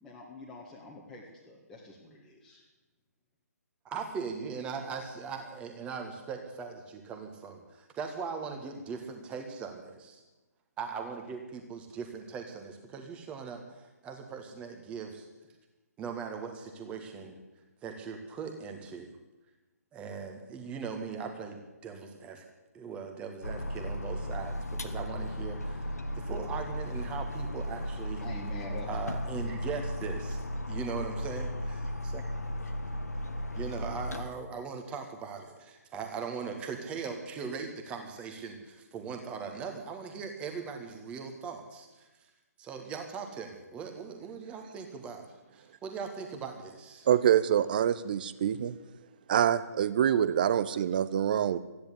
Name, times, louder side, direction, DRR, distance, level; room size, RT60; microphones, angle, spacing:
voice 1, 0.0-2.6 28.2-29.0, left 2 dB, 5° left, -5 dB, 1.7 m, -46 dB
voice 2, 3.9-10.2 10.8-15.3 16.0-17.4 17.8-19.1 19.9-22.4 22.7-28.2 28.9-30.4 30.7-32.2 33.6-42.1 42.6-47.1, right 5 dB, 10° right, 4 dB, 1.7 m, -40 dB
sound 1, 23.4-34.3, left 1 dB, 70° left, 1.5 m, -35 dB
voice 3, 47.1-48.7 49.3-51.6, right 9 dB, 30° right, 15 dB, 0.6 m, -25 dB
14.0 x 10.5 x 8.5 m, 1.1 s
figure-of-eight pair, 140°, 9 cm